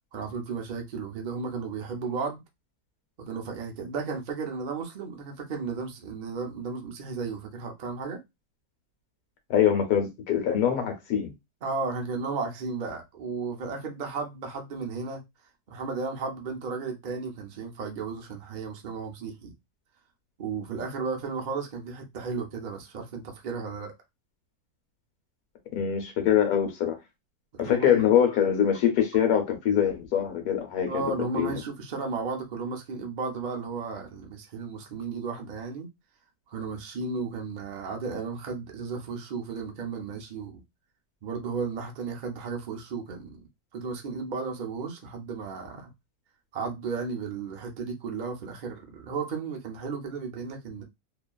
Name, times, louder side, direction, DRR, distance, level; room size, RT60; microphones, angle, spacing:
voice 1, 0.1-2.4 3.2-8.2 11.6-15.2 15.7-19.5 20.4-23.9 27.5-28.0 30.9-35.9 36.5-40.6 41.2-43.4 43.7-45.9 46.5-50.8, right 4 dB, 75° right, 0.4 m, -34 dB
voice 2, 9.5-11.3 25.7-27.0 27.6-31.0 31.3-31.5, left 9 dB, 70° left, 1.2 m, -24 dB
2.8 x 2.4 x 2.2 m
omnidirectional pair, 1.7 m